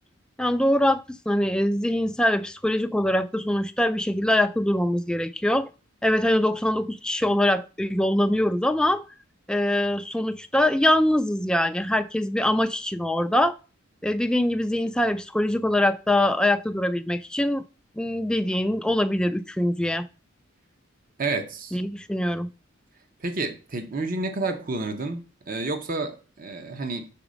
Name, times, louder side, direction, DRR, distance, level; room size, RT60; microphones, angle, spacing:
voice 1, 0.4-5.7 6.0-9.0 9.5-13.6 14.0-17.6 18.0-20.1 21.7-22.5, left 1 dB, 5° left, 0.3 m, -23 dB
voice 2, 21.2-21.8 23.2-27.1, right 3 dB, 40° right, 0.8 m, -30 dB
6.0 x 4.1 x 5.0 m
head